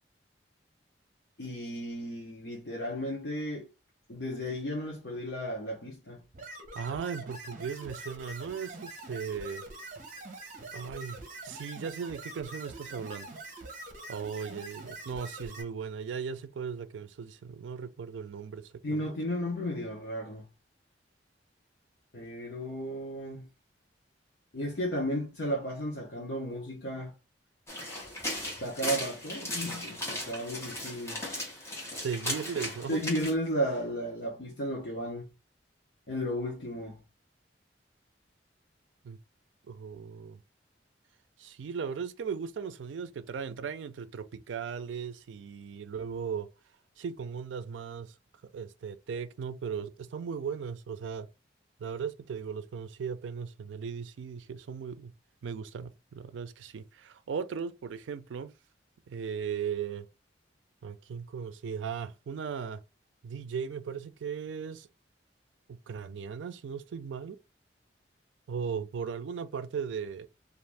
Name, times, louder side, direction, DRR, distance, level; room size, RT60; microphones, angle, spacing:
voice 1, 1.4-3.7 4.1-6.2 18.8-20.5 22.1-23.5 24.5-27.1 28.6-31.3 32.9-35.3 36.1-37.0, equal, 65° left, 0.8 m, -34 dB
sound 1, 6.3-15.6, right 2 dB, 45° right, 0.8 m, -44 dB
voice 2, 6.7-9.6 10.7-13.3 14.1-19.1 31.9-33.0 39.0-39.2 39.7-40.4 41.4-46.5 47.0-48.1 48.5-51.3 51.8-55.1 55.4-58.5 59.1-60.1 60.8-62.8 63.2-64.9 65.7-67.4 68.5-70.3, right 6 dB, 90° right, 0.4 m, -37 dB
sound 2, 27.7-33.3, left 1 dB, 15° left, 0.9 m, -37 dB
2.5 x 2.4 x 3.2 m
head